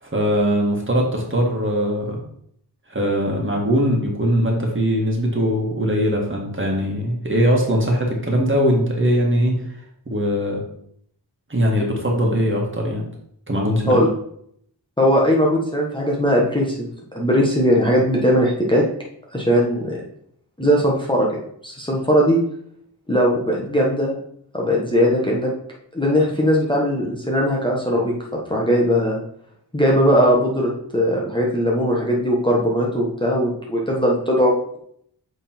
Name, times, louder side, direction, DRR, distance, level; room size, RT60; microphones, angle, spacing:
voice 1, 0.0-2.2 2.9-9.6 10.1-10.6 11.5-13.0 13.5-14.0, equal, 30° right, -1 dB, 1.8 m, -20 dB
voice 2, 15.0-18.8 19.3-20.0 20.6-21.3 21.6-22.4 23.1-24.2 24.5-25.5 25.9-29.2 29.7-34.5, equal, 10° left, -4 dB, 1.3 m, -19 dB
7.7 x 3.7 x 4.5 m, 0.69 s
wide cardioid pair, 90°, 41 cm